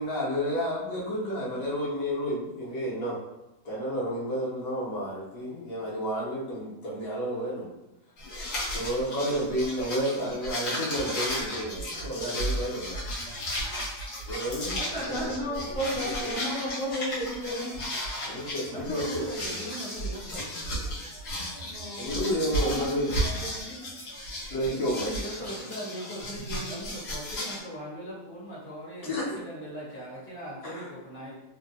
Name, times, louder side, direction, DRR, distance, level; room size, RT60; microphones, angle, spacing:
voice 1, 0.0-3.2 3.6-7.7 8.7-13.0 14.3-14.8 15.6-16.3 18.2-19.2 22.0-23.1 24.5-25.1 29.0-29.4 30.6-30.9, equal, 65° left, -6 dB, 1.2 m, -31 dB
sound 1, 8.2-27.6, equal, 85° left, 1.6 m, -34 dB
voice 2, 14.8-17.7 21.6-23.8, equal, 30° right, -8 dB, 0.9 m, -34 dB
voice 3, 18.7-20.5 24.7-31.4, equal, 10° left, -7 dB, 0.7 m, -39 dB
3.4 x 2.3 x 2.6 m, 0.94 s
omnidirectional pair, 1.7 m